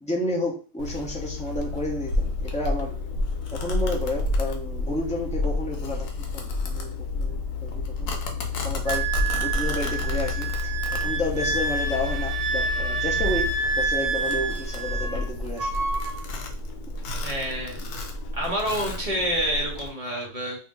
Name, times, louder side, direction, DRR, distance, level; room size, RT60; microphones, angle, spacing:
voice 1, 0.0-2.9 3.5-6.1 6.3-8.2 8.6-9.1 9.4-10.5 10.9-13.5 13.8-15.7, left 1 dB, 10° left, -2 dB, 0.5 m, -31 dB
Domestic sounds home sounds, 0.8-19.9, left 3 dB, 90° left, 1.2 m, -30 dB
Wind instrument woodwind instrument, 8.9-15.3 15.6-16.2, right 4 dB, 60° right, 1.0 m, -28 dB
voice 2, 17.2-17.8 18.3-20.7, equal, 30° right, -2 dB, 0.8 m, -28 dB
2.6 x 2.6 x 3.7 m, 0.38 s
omnidirectional pair, 1.6 m